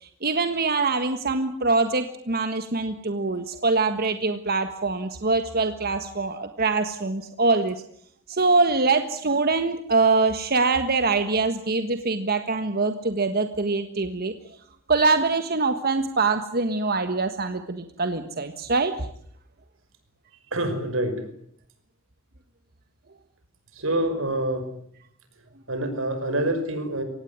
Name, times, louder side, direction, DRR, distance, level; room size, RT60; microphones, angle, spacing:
voice 1, 0.0-7.8 8.3-14.3 14.9-19.1, right 3 dB, 50° right, 8 dB, 1.5 m, -24 dB
voice 2, 20.5-21.2 23.7-24.7 25.7-27.0, right 1 dB, 90° right, 9 dB, 5.6 m, -26 dB
24.5 x 18.5 x 9.7 m, 0.67 s
head